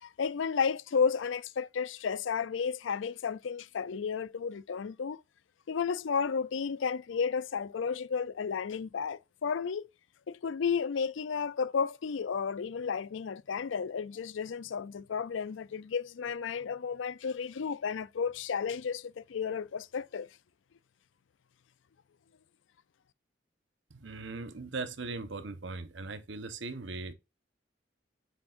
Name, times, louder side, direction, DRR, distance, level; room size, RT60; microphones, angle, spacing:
voice 1, 0.0-5.2 5.7-9.9 10.3-20.3, left 6 dB, 85° left, 0.4 m, -32 dB
voice 2, 23.9-27.1, right 3 dB, 80° right, 1.0 m, -39 dB
7.3 x 6.2 x 2.5 m
head